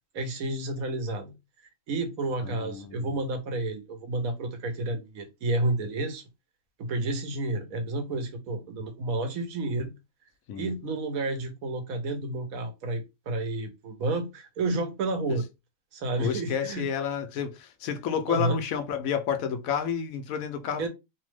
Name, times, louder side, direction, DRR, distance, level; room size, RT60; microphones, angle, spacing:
voice 1, 0.1-1.3 1.9-6.2 6.8-9.9 10.6-15.4 15.9-16.8 18.3-18.6 20.8-20.9, right 2 dB, 90° right, 1.2 m, -30 dB
voice 2, 2.4-3.1 10.5-10.7 15.3-15.4 16.2-20.9, left 7 dB, 80° left, 1.0 m, -30 dB
3.0 x 2.0 x 3.1 m
omnidirectional pair, 1.4 m